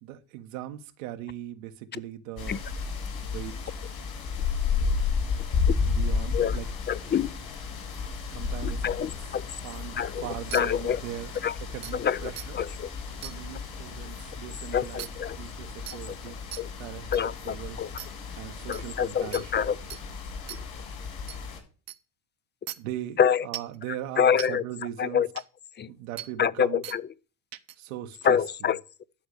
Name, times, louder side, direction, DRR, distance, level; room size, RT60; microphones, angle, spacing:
voice 1, 0.0-2.6 3.2-3.8 5.8-6.7 8.3-9.1 9.6-11.3 11.7-12.5 13.2-15.1 15.4-16.4 16.8-17.8 18.4-19.7 22.8-23.2 23.4-25.2 25.9-26.8 27.8-28.4, right 12 dB, 85° right, 1.2 m, -39 dB
sound 1, 2.4-21.6, left 5 dB, 65° left, 7.2 m, -33 dB
voice 2, 6.9-7.3 8.6-9.4 10.0-11.0 11.4-11.6 11.9-12.9 14.7-15.4 16.3-16.7 17.1-17.9 18.7-19.8 23.2-23.5 24.2-24.6 25.0-25.3 25.8-25.9 26.4-27.1 28.2-28.8, left 8 dB, 25° left, 0.5 m, -26 dB
sound 2, 10.5-10.6 11.3-11.4 11.8-11.9 12.4-12.5 13.2-13.3 15.0-15.1 15.9-16.0 16.5-16.6 17.1-17.2 18.0-18.1 18.7-18.8 19.3-19.4 19.9-20.0 20.5-20.6 21.3-21.4 21.9-22.0 22.7-22.8 23.5-23.7 24.4-24.5 25.4-25.5 26.2-26.3 26.8-27.0 27.5-27.7, right 13 dB, 60° right, 1.0 m, -38 dB
12.5 x 4.8 x 8.3 m
hypercardioid pair, 75°, 39 cm